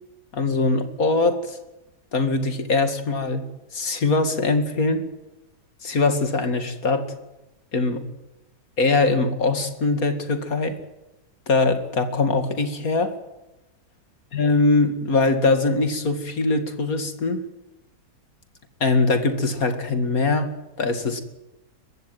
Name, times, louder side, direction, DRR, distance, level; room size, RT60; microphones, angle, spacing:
voice 1, 0.3-1.6 2.1-3.4 3.7-5.0 5.8-7.1 7.7-8.0 8.8-10.8 11.5-13.1 14.3-17.5 18.8-20.5 20.8-21.2, left 3 dB, 50° left, 8 dB, 2.6 m, -22 dB
21.0 x 15.5 x 9.2 m, 0.98 s
omnidirectional pair, 1.9 m